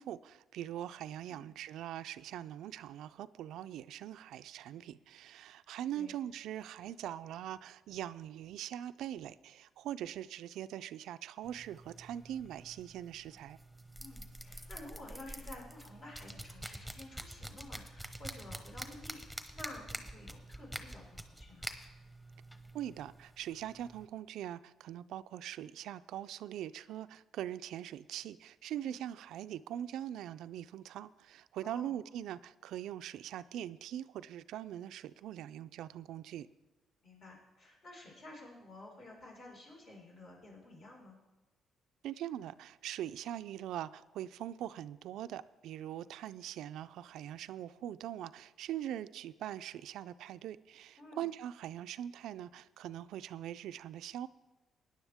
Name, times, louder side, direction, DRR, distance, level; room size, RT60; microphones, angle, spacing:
voice 1, 0.0-13.6 22.7-36.5 42.0-54.3, right 11 dB, 85° right, 14 dB, 0.3 m, -42 dB
sound 1, 11.4-24.1, right 1 dB, 5° left, 1.0 m, -47 dB
voice 2, 14.0-21.7 28.8-28.9 31.6-31.9 37.0-41.2 51.0-51.3, left 1 dB, 60° left, -3 dB, 5.0 m, -51 dB
17.0 x 10.0 x 3.5 m, 1.1 s
cardioid pair, 90°, 0 cm